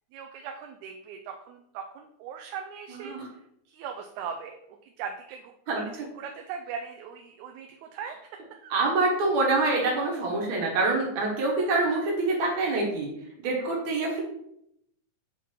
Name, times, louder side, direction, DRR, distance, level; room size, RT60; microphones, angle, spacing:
voice 1, 0.1-3.2 3.7-4.6 4.8-5.9 6.2-8.2 8.5-8.7 11.6-11.7 13.7-13.9 14.1-14.2, right 6 dB, 85° right, 4 dB, 2.0 m, -39 dB
voice 2, 2.9-3.3 5.7-5.8 8.7-13.1 13.4-14.2, right 3 dB, 65° right, -2 dB, 2.8 m, -26 dB
8.0 x 2.9 x 4.5 m, 0.75 s
omnidirectional pair, 3.4 m